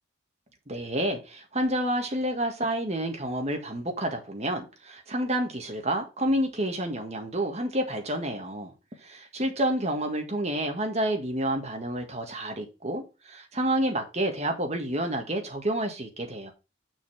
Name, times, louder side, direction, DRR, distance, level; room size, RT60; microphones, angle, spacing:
voice 1, 0.7-8.7 9.0-16.5, right 1 dB, 35° right, 1.7 m, -29 dB
6.3 x 5.3 x 5.4 m
head